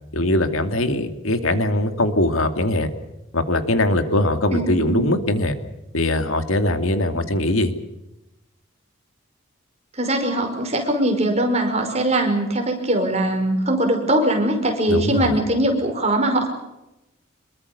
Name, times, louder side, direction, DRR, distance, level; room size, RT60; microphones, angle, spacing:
voice 1, 0.1-2.9 3.3-5.6 5.9-7.7 14.9-15.4, left 1 dB, 80° left, 8 dB, 2.5 m, -21 dB
voice 2, 4.5-5.0 10.0-16.5, right 1 dB, 30° right, 4 dB, 5.3 m, -21 dB
26.0 x 22.5 x 6.9 m, 0.93 s
head